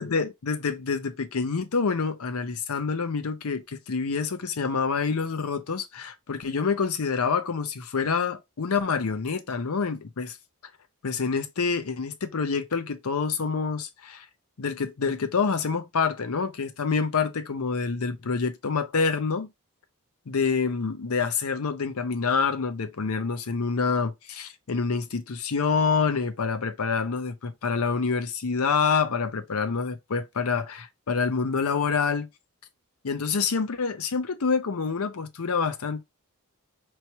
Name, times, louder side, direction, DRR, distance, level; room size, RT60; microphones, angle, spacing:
voice 1, 0.0-10.4 11.0-14.2 14.6-19.5 20.3-32.3 33.0-36.0, left 5 dB, 70° left, 0.6 m, -27 dB
4.4 x 3.1 x 2.9 m
head